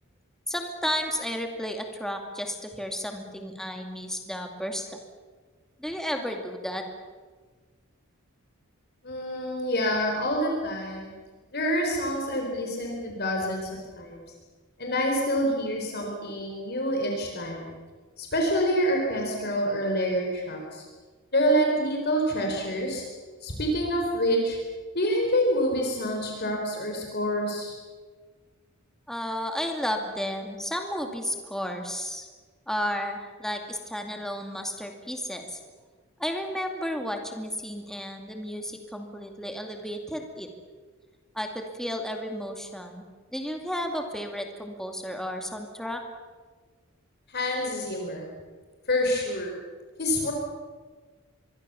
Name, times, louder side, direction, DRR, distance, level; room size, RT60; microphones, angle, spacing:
voice 1, 0.5-4.9 5.8-6.8 29.1-32.3 32.7-35.6 36.2-40.5 41.3-43.0 43.3-46.0, equal, ahead, 3 dB, 2.4 m, -33 dB
voice 2, 9.0-11.1 11.5-13.7 14.0-14.2 14.8-17.7 18.2-20.8 21.3-23.0 23.4-24.6 24.9-27.8 47.3-48.3 48.9-49.5 50.0-50.3, equal, 50° left, 1 dB, 4.5 m, -27 dB
25.0 x 22.5 x 7.1 m, 1.4 s
head